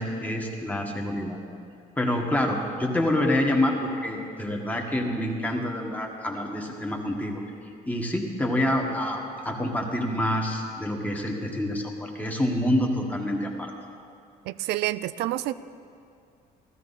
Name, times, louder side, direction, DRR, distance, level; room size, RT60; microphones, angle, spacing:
voice 1, 0.0-1.4 2.0-7.4 7.8-13.7, left 1 dB, 10° left, 1 dB, 1.6 m, -27 dB
voice 2, 14.4-15.5, right 15 dB, 80° right, 16 dB, 0.4 m, -28 dB
15.5 x 13.5 x 4.2 m, 2.4 s
cardioid pair, 110°, 17 cm